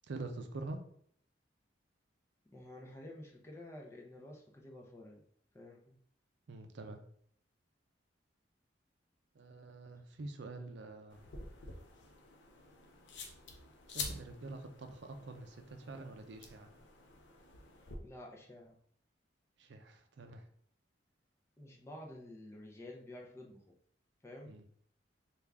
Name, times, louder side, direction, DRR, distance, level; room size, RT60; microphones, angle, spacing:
voice 1, 0.0-0.8 6.5-7.0 9.3-11.3 13.9-16.7 19.6-20.5 24.4-24.7, right 2 dB, 65° right, 6 dB, 0.5 m, -46 dB
voice 2, 2.5-5.2 5.5-5.9 18.0-18.8 21.6-23.7 24.2-24.5, left 1 dB, 15° left, 0 dB, 0.5 m, -50 dB
sound 1, 11.1-18.0, left 4 dB, 70° left, 0.6 m, -48 dB
3.5 x 2.4 x 3.4 m, 0.63 s
head